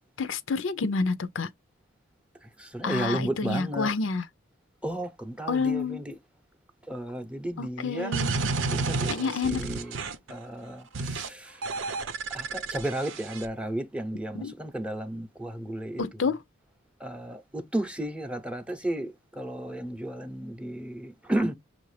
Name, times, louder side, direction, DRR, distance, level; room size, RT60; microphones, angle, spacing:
voice 1, 0.2-1.5 2.8-4.3 5.5-6.0 7.6-8.3 9.0-9.6 14.3-14.5 16.0-16.4, left 4 dB, 70° left, 0.5 m, -28 dB
voice 2, 2.6-4.0 4.8-6.2 6.9-8.2 8.7-10.0 10.3-11.6 12.3-16.3 17.0-21.5, right 1 dB, 5° right, 0.7 m, -33 dB
sound 1, 8.1-10.3 10.9-11.3 11.6-13.5, right 3 dB, 70° right, 0.7 m, -31 dB
6.2 x 2.5 x 3.2 m
head